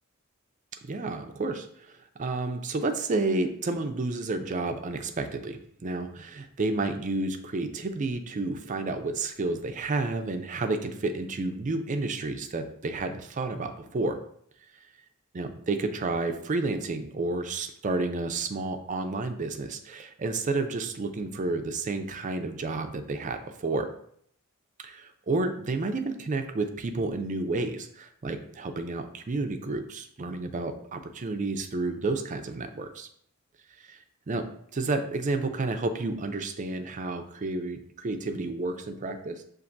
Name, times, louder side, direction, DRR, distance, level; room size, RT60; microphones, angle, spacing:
voice 1, 0.8-1.7 2.2-14.2 15.3-23.9 24.8-33.1 33.9-34.0 34.3-34.4 34.7-39.4, right 3 dB, 35° right, 6 dB, 0.4 m, -30 dB
7.0 x 2.6 x 2.6 m, 0.65 s
head